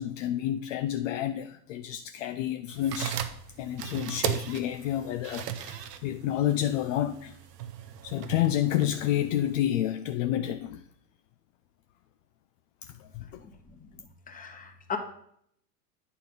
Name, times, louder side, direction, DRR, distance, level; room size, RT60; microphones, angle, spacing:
voice 1, 0.0-3.2 3.6-7.4 8.0-10.8 13.0-13.4, left 12 dB, 55° left, 0.5 m, -29 dB
sound 1, 2.7-9.6, right 9 dB, 80° right, 0.8 m, -37 dB
voice 2, 14.3-15.0, left 6 dB, 15° left, 1.2 m, -36 dB
9.0 x 4.3 x 5.2 m
hypercardioid pair, 100°, 47 cm